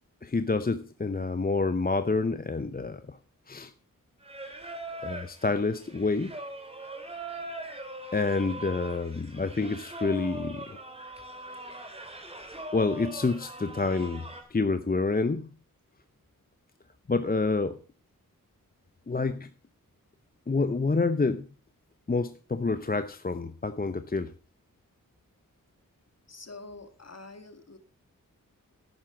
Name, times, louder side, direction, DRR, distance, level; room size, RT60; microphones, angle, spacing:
voice 1, 0.2-3.2 3.5-3.7 5.0-6.3 8.1-10.8 12.7-15.5 17.1-17.8 19.1-19.5 20.5-21.5 22.1-24.3, left 3 dB, 25° left, 11 dB, 0.7 m, -28 dB
Singing, 4.2-14.4, right 1 dB, 15° right, 2.8 m, -41 dB
voice 2, 26.3-27.8, left 3 dB, 50° left, 9 dB, 2.0 m, -46 dB
10.5 x 9.7 x 5.0 m, 0.38 s
cardioid pair, 45°, 34 cm